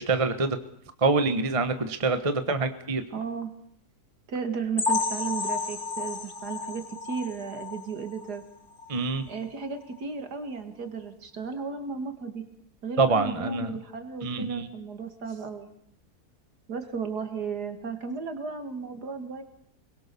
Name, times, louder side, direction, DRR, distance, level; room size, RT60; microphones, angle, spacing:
voice 1, 0.1-0.5 1.0-3.0 8.9-9.2 13.0-13.7 14.2-14.6, right 3 dB, 25° right, 9 dB, 1.2 m, -25 dB
voice 2, 3.1-3.5 4.3-8.4 9.3-12.4 12.8-15.7 16.7-19.4, right 5 dB, 85° right, 7 dB, 2.6 m, -34 dB
sound 1, 4.8-8.4 8.8-9.0 9.3-9.4 9.9-10.0, left 4 dB, 35° left, 1.6 m, -32 dB
28.0 x 22.5 x 6.9 m, 0.70 s
omnidirectional pair, 1.7 m